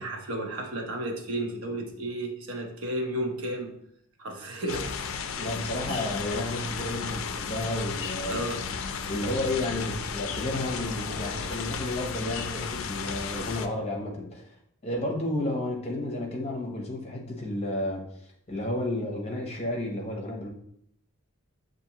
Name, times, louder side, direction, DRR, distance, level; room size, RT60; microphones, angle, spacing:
voice 1, 0.0-3.7 4.2-5.2 5.9-6.1 8.3-8.7, right 1 dB, 75° right, 2 dB, 0.8 m, -33 dB
sound 1, 4.7-13.7, left 6 dB, 65° left, 0.4 m, -34 dB
voice 2, 5.4-8.5 9.1-14.5 14.8-18.0 18.5-20.5, left 1 dB, 30° left, 0 dB, 0.8 m, -31 dB
6.9 x 2.6 x 2.8 m, 0.70 s
head